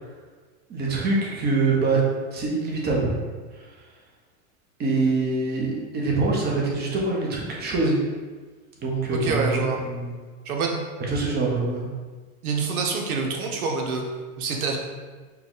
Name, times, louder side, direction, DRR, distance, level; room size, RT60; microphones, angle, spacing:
voice 1, 0.7-2.0 2.3-3.1 4.8-8.0 8.8-10.1 11.1-11.9, right 3 dB, 25° right, -2 dB, 0.9 m, -24 dB
voice 2, 9.1-9.8 10.4-10.8 12.4-14.0 14.4-14.8, right 4 dB, 85° right, 1 dB, 0.9 m, -26 dB
4.5 x 2.3 x 3.8 m, 1.4 s
hypercardioid pair, 125°, 42 cm